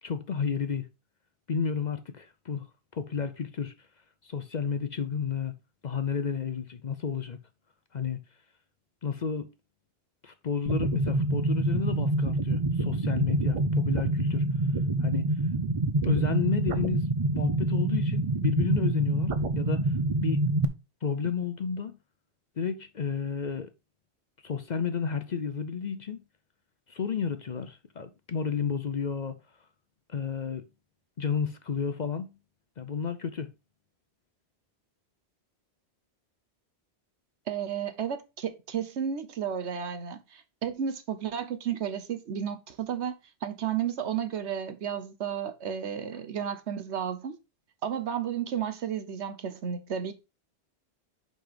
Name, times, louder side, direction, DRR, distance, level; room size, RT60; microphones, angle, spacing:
voice 1, 0.0-0.9 1.5-2.7 2.9-3.7 4.2-5.6 5.8-7.4 7.9-8.2 9.0-9.5 10.2-14.4 15.0-15.3 16.0-17.1 17.3-19.9 20.2-20.4 21.0-22.0 22.6-23.7 24.4-26.2 26.9-29.4 30.1-30.7 31.2-32.4 32.8-33.5, left 6 dB, 45° left, 0.7 m, -31 dB
sound 1, 10.7-20.7, right 2 dB, 35° right, 0.6 m, -26 dB
voice 2, 37.5-43.1 43.4-47.4 47.8-50.1, right 8 dB, 80° right, 1.2 m, -32 dB
5.8 x 5.2 x 4.9 m
omnidirectional pair, 1.1 m